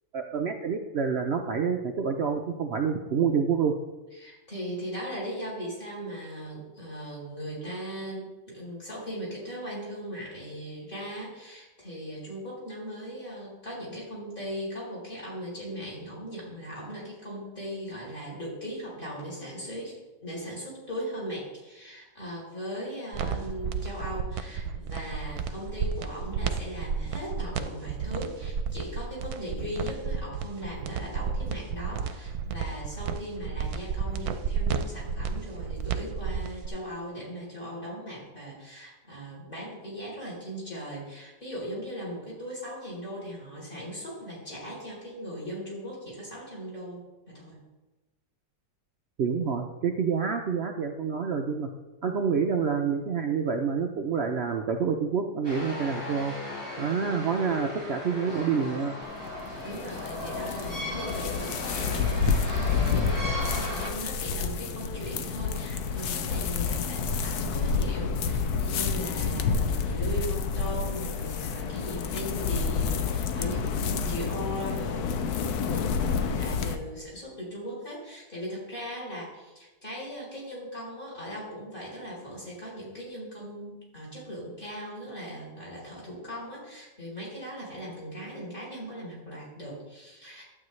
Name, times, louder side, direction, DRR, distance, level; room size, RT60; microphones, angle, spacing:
voice 1, 0.1-3.7 49.2-51.7 52.0-56.3 56.8-58.9, right 6 dB, 80° right, 4 dB, 0.5 m, -27 dB
voice 2, 4.1-47.6 59.6-90.4, equal, 30° left, -5 dB, 3.9 m, -38 dB
sound 1, 23.1-36.7, right 6 dB, 65° right, 1.1 m, -32 dB
sound 2, 55.4-63.9, left 1 dB, 45° left, 4.2 m, -36 dB
sound 3, 59.0-76.8, left 5 dB, 65° left, 1.1 m, -29 dB
12.0 x 8.6 x 3.2 m, 1.1 s
omnidirectional pair, 1.9 m